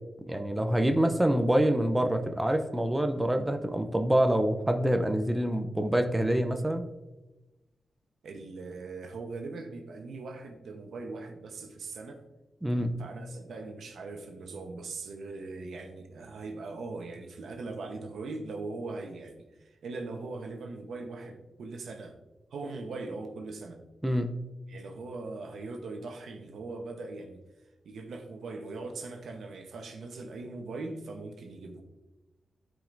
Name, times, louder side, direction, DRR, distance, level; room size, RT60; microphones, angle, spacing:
voice 1, 0.3-6.8 12.6-12.9 24.0-24.3, right 1 dB, 10° right, 6 dB, 0.6 m, -26 dB
voice 2, 8.2-12.2 13.0-19.4 19.6-22.2 22.5-23.8 24.7-27.4 27.8-31.8, right 3 dB, 85° right, 5 dB, 1.0 m, -40 dB
12.5 x 5.0 x 2.6 m, 1.1 s
wide cardioid pair, 95°, 0 cm